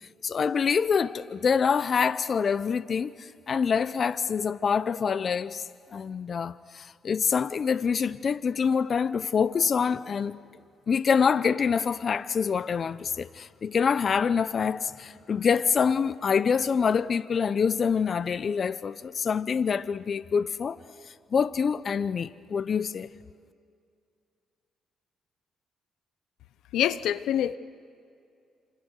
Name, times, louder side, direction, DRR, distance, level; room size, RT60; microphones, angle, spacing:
voice 1, 0.2-5.6 5.9-10.4 10.9-20.8 21.3-23.1, left 6 dB, 45° left, 0.7 m, -26 dB
voice 2, 26.7-27.6, left 11 dB, 80° left, 0.8 m, -25 dB
29.0 x 27.0 x 6.5 m
cardioid pair, 90°, 0 cm